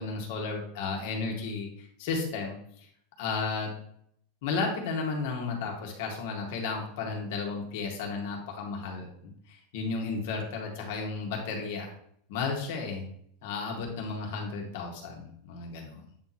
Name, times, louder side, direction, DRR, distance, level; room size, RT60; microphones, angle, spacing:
voice 1, 0.0-2.6 3.2-3.7 4.4-9.1 9.5-11.9 12.3-13.1 13.4-16.1, left 4 dB, 65° left, 1 dB, 1.9 m, -33 dB
8.6 x 3.1 x 4.3 m, 0.67 s
supercardioid pair, 155°, 0 cm